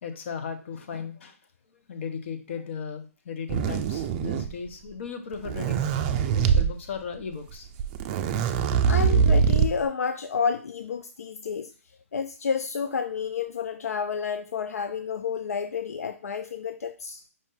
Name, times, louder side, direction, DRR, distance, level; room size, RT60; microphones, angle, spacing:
voice 1, 0.0-1.4 1.9-5.8 6.3-7.7, left 6 dB, 50° left, 7 dB, 0.9 m, -36 dB
sound 1, 3.5-4.7 5.3-6.7 7.5-7.6 7.8-9.9, right 7 dB, 30° right, 0.4 m, -23 dB
voice 2, 8.8-11.7 12.1-17.2, left 6 dB, 80° left, 9 dB, 0.4 m, -30 dB
5.3 x 2.7 x 3.7 m, 0.35 s
hypercardioid pair, 145°, 8 cm